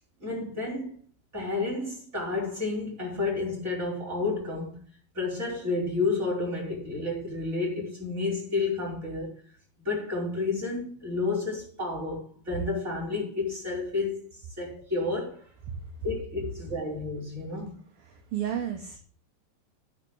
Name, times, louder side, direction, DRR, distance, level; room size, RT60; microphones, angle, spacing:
voice 1, 0.2-1.0 1.3-4.8 5.1-9.3 9.8-14.3 14.6-15.4 16.0-17.8, left 3 dB, 15° right, 5.2 m, -31 dB
voice 2, 18.1-19.0, right 10 dB, 65° right, 2.6 m, -32 dB
10.5 x 5.9 x 7.8 m
omnidirectional pair, 5.4 m